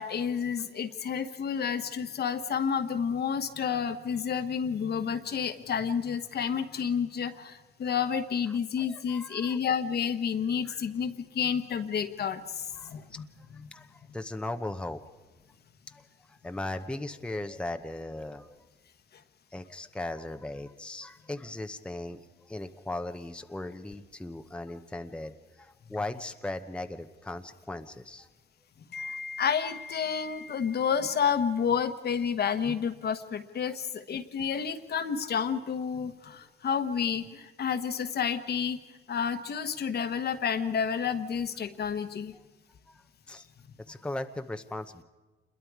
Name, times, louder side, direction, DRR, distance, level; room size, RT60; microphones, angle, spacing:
voice 1, 0.0-13.2 28.9-38.8 39.1-42.3, left 7 dB, 55° left, 9 dB, 1.3 m, -30 dB
voice 2, 8.8-9.6 10.6-10.8 12.8-15.0 15.9-18.6 19.5-28.3 42.9-43.5 43.9-45.0, left 2 dB, 5° left, 7 dB, 0.8 m, -38 dB
27.0 x 21.5 x 4.9 m, 1.2 s
cardioid pair, 90°, 20 cm